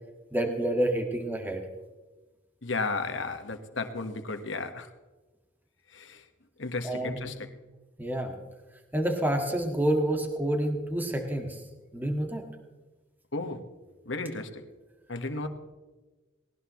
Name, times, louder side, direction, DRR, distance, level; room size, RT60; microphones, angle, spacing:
voice 1, 0.3-1.6 6.8-7.3 8.0-8.4 8.9-11.6 11.9-12.4, right 1 dB, 10° right, 3 dB, 1.8 m, -28 dB
voice 2, 2.6-4.9 5.9-6.2 6.6-7.3 13.3-13.6 14.0-14.5 15.1-15.5, left 3 dB, 75° left, 7 dB, 1.5 m, -33 dB
19.5 x 18.5 x 3.1 m, 1.2 s
head